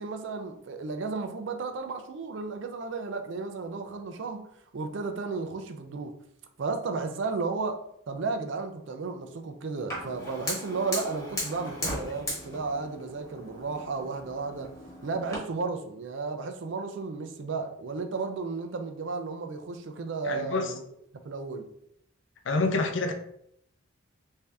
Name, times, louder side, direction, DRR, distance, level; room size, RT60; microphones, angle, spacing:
voice 1, 0.0-4.5 4.7-6.1 6.6-14.7 15.0-20.8 21.2-21.7, right 4 dB, 65° right, 0.4 m, -33 dB
Fire, 9.9-15.4, left 1 dB, 15° left, 1.2 m, -37 dB
voice 2, 20.2-20.7 22.5-23.1, left 3 dB, 65° left, 0.5 m, -27 dB
3.4 x 2.7 x 3.3 m
head